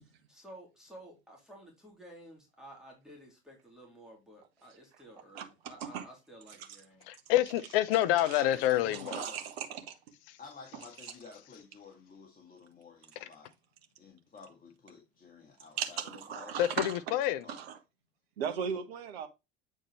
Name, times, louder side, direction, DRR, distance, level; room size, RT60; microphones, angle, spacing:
voice 1, 0.0-7.1 8.5-8.6, right 1 dB, ahead, 3.2 m, -53 dB
voice 2, 7.1-9.2 13.2-13.3 16.6-17.4, left 13 dB, 60° left, 0.7 m, -27 dB
voice 3, 8.2-9.4 10.4-13.5 14.0-16.6 17.4-17.6, left 5 dB, 25° left, 1.9 m, -51 dB
voice 4, 8.9-10.0 15.8-16.9 17.5-17.8 18.4-19.3, right 8 dB, 70° right, 1.3 m, -36 dB
8.6 x 4.4 x 3.1 m
figure-of-eight pair, 65°, 32 cm